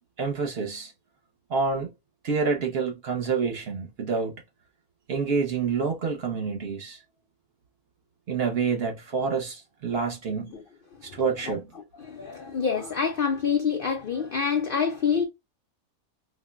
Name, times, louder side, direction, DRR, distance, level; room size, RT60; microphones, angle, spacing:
voice 1, 0.2-0.9 1.5-1.9 2.2-4.4 5.1-7.0 8.3-10.6 11.0-11.7, right 5 dB, 55° right, 0.7 m, -28 dB
voice 2, 10.9-15.2, left 6 dB, 90° left, 0.4 m, -27 dB
4.4 x 2.0 x 2.2 m
omnidirectional pair, 1.5 m